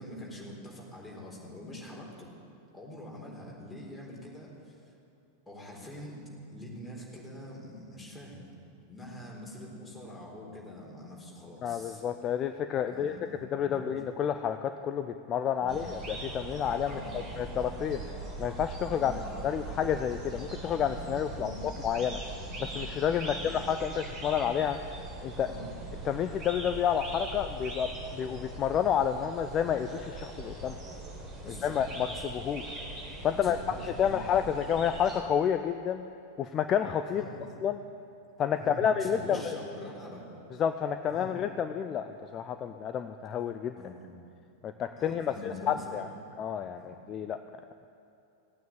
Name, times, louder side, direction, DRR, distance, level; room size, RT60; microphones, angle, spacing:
voice 1, 0.0-2.3 2.7-4.8 5.5-6.2 6.5-8.5 8.9-12.0 12.9-14.0 15.6-15.9 16.8-17.3 18.9-19.2 21.3-21.6 23.2-23.5 25.3-25.7 31.4-31.8 32.1-32.3 33.3-34.2 37.1-37.5 38.5-40.3 41.1-41.4 43.8-44.1 45.0-46.0 46.8-46.9, left 1 dB, 5° left, -5 dB, 4.2 m, -44 dB
voice 2, 11.6-18.0 18.4-19.1 19.4-21.5 21.8-22.2 22.6-24.8 25.2-25.5 26.0-30.8 31.6-32.8 33.2-36.0 36.4-37.2 37.6-37.8 38.4-39.4 40.6-43.8 44.6-46.1 46.4-47.4, left 8 dB, 30° left, 9 dB, 0.5 m, -30 dB
sound 1, 15.7-35.2, right 2 dB, 30° right, 4.0 m, -41 dB
16.0 x 9.3 x 8.8 m, 2.8 s
figure-of-eight pair, 90°, 0 cm